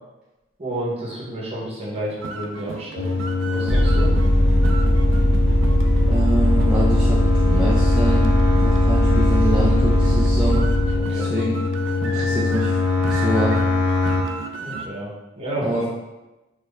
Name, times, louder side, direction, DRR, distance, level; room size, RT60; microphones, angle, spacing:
voice 1, 0.6-4.1 10.9-11.3 14.6-15.1 15.4-15.8, right 1 dB, 30° right, -5 dB, 0.9 m, -30 dB
sound 1, 1.9-14.9, right 4 dB, 70° right, 0.3 m, -35 dB
sound 2, 3.0-14.2, left 3 dB, 65° left, 0.6 m, -23 dB
Vehicle, 3.7-11.0, equal, 10° left, 1.0 m, -19 dB
voice 2, 6.1-8.3 8.6-10.6 11.1-11.6 12.0-12.8 13.0-13.6 15.6-15.9, right 1 dB, 5° right, -8 dB, 0.4 m, -25 dB
3.0 x 2.5 x 3.9 m, 1.0 s
head